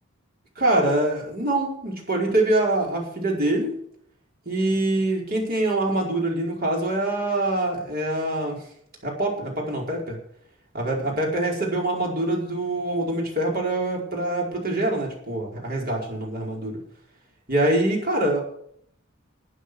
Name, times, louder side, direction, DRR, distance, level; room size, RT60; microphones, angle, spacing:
voice 1, 0.6-3.7 4.4-8.6 9.0-10.2 10.7-16.8 17.5-18.4, right 1 dB, 50° right, -1 dB, 4.8 m, -24 dB
12.5 x 9.0 x 6.5 m, 0.65 s
head